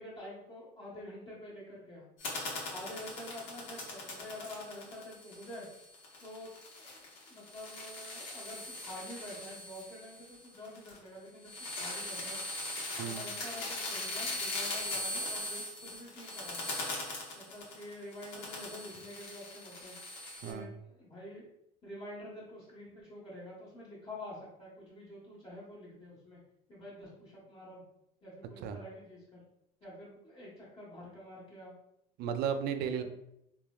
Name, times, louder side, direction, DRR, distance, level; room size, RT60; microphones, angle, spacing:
voice 1, 0.0-2.0 2.7-5.7 6.2-6.5 6.8-7.0 7.3-12.4 13.0-16.7 17.3-20.0 20.4-21.4 21.8-26.4 26.7-27.8 28.2-29.4 29.8-31.7 33.0-33.1, left 1 dB, 30° left, -7 dB, 1.2 m, -47 dB
sound 1, 2.2-11.1 11.4-20.5, left 2 dB, 60° left, 1.0 m, -40 dB
voice 2, 32.2-33.0, right 7 dB, 50° right, 8 dB, 0.4 m, -34 dB
3.2 x 2.1 x 2.3 m, 0.79 s
supercardioid pair, 90°, 21 cm